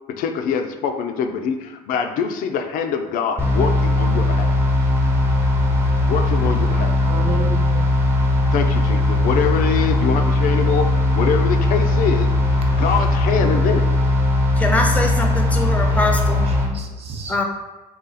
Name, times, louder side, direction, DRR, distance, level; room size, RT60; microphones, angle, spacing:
voice 1, 0.2-4.5 6.0-7.0 8.5-13.9, left 6 dB, 75° left, 6 dB, 0.5 m, -24 dB
sound 1, 3.4-16.7, left 1 dB, 15° right, 0.9 m, -18 dB
voice 2, 6.6-7.8 12.8-13.0 15.8-16.1 16.5-17.4, right 3 dB, 45° right, 2 dB, 0.7 m, -32 dB
voice 3, 14.6-16.4 17.3-17.4, left 2 dB, 10° left, 2 dB, 0.6 m, -22 dB
3.9 x 2.4 x 4.0 m, 1.1 s
cardioid pair, 110°, 15 cm